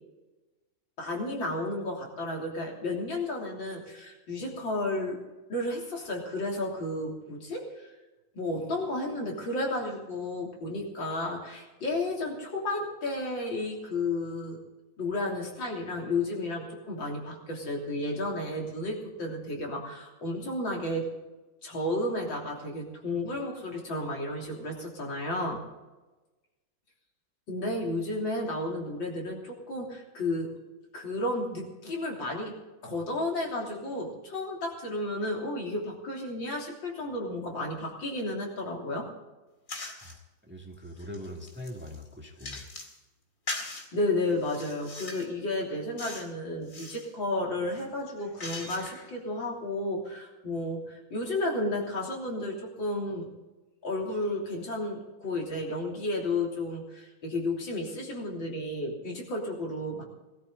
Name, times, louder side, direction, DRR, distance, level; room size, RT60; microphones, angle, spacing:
voice 1, 1.0-5.2 5.5-8.0 8.3-14.6 15.0-21.1 21.6-25.6 27.5-30.5 30.9-32.6 32.8-39.1 43.9-53.3 53.8-60.0, left 2 dB, 70° left, -1 dB, 3.9 m, -32 dB
sound 1, 39.7-40.2 40.7-43.0 43.5-43.9 44.4-45.3 46.0-46.3 46.6-47.1 47.7-49.1, left 2 dB, 40° left, 2.6 m, -40 dB
voice 2, 40.4-42.6, left 1 dB, 5° right, 1 dB, 2.0 m, -42 dB
20.5 x 13.5 x 3.9 m, 1.1 s
omnidirectional pair, 2.2 m